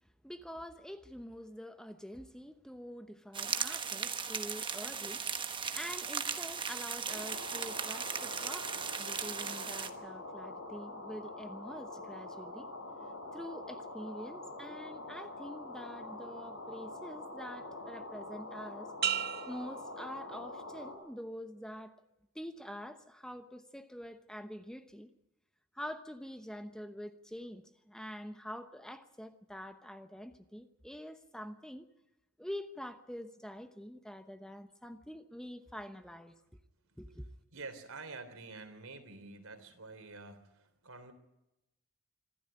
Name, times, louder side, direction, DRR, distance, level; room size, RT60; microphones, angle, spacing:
voice 1, 0.2-12.7 13.3-18.9 19.5-21.9 22.3-25.1 25.7-31.9 32.4-36.4 37.0-37.3, equal, 5° left, 8 dB, 0.9 m, -46 dB
sound 1, 3.3-9.9, right 6 dB, 20° right, 1.2 m, -37 dB
sound 2, 7.0-20.9, left 2 dB, 65° left, 7.9 m, -45 dB
sound 3, 19.0-20.8 21.3-21.8, right 9 dB, 45° right, 0.7 m, -37 dB
voice 2, 37.5-41.1, right 3 dB, 75° right, 8 dB, 3.5 m, -48 dB
26.0 x 13.5 x 10.0 m, 0.91 s
head